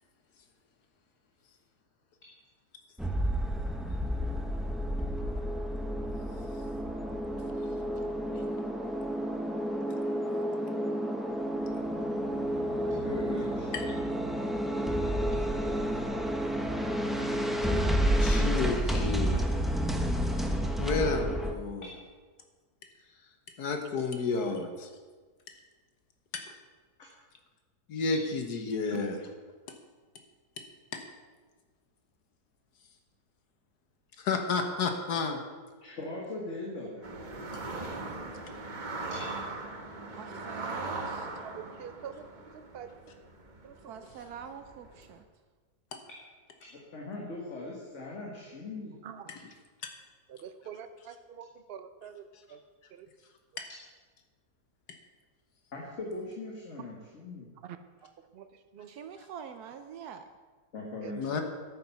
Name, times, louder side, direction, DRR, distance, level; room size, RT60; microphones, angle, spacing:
sound 1, 3.0-21.5, equal, ahead, 0.4 m, -30 dB
voice 1, 12.7-13.9 17.6-18.4 28.1-28.2 35.8-37.1 39.1-39.3 46.1-46.2 46.7-48.9 55.7-57.5 60.7-61.2, left 2 dB, 50° left, -2 dB, 1.9 m, -40 dB
voice 2, 18.2-19.4 20.8-21.9 23.6-24.7 26.3-26.5 27.9-29.2 29.7-29.8 30.6-30.7 30.9-31.0 34.2-35.4 45.9-46.0 49.3-49.4 49.8-49.9 53.6-53.7 61.2-61.4, left 4 dB, 80° left, 5 dB, 1.7 m, -31 dB
sound 2, 37.0-45.1, right 3 dB, 35° right, 1.1 m, -40 dB
voice 3, 40.1-41.3 43.9-45.2 58.9-60.2, right 7 dB, 75° right, 8 dB, 1.2 m, -45 dB
voice 4, 41.4-43.0 43.6-44.1 49.0-49.3 50.3-52.6 52.9-53.1 56.8-56.9 57.6-58.9 61.0-61.2, right 8 dB, 50° right, 10 dB, 0.7 m, -45 dB
11.0 x 9.0 x 5.7 m, 1.4 s
omnidirectional pair, 1.7 m